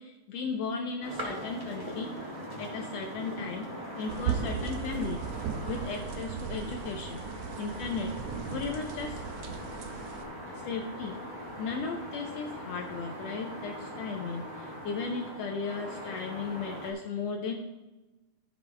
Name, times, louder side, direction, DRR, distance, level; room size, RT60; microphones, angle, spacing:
voice 1, 0.0-2.1 2.6-3.6 4.0-5.2 5.7-7.2 7.6-8.1 8.5-9.2 10.5-11.2 11.6-17.5, left 4 dB, 85° left, 2 dB, 1.4 m, -35 dB
sound 1, 1.0-16.9, equal, 35° right, 0.6 m, -41 dB
sound 2, 4.1-10.2, right 7 dB, 80° right, 1.5 m, -37 dB
14.0 x 5.3 x 3.4 m, 1.1 s
omnidirectional pair, 3.8 m